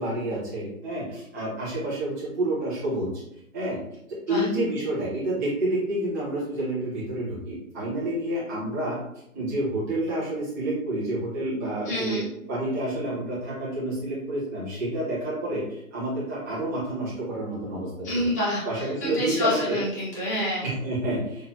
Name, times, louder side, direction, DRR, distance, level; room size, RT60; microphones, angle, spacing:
voice 1, 0.0-3.1 3.5-3.8 4.3-9.0 9.3-12.2 12.5-15.6 15.9-18.3 18.6-19.8 20.6-21.5, right 1 dB, 15° right, -10 dB, 1.3 m, -29 dB
voice 2, 11.8-12.3 18.0-20.6, left 1 dB, 10° left, -11 dB, 1.0 m, -28 dB
6.9 x 2.6 x 2.8 m, 0.81 s
hypercardioid pair, 170°, 42 cm